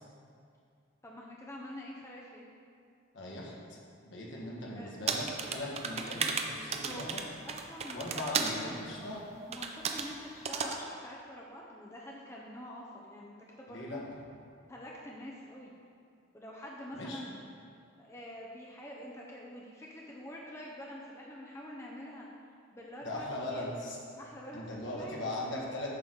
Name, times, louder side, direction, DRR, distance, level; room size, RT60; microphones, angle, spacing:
voice 1, 1.0-2.5 4.3-4.4 4.7-4.9 6.8-7.1 7.4-9.2 9.5-14.0 14.7-15.7 16.3-17.4 18.0-22.3 22.7-23.8 24.2-25.2, left 1 dB, 15° left, -3 dB, 0.6 m, -46 dB
voice 2, 3.1-3.8 4.0-7.2 7.9-9.2 13.7-14.0 16.9-17.3 23.0-24.0 24.5-26.0, left 1 dB, 70° left, -3 dB, 1.4 m, -39 dB
sound 1, 5.1-8.6 9.5-10.1 10.5-10.8, right 5 dB, 30° right, 0.4 m, -34 dB
8.3 x 3.9 x 6.2 m, 2.3 s
head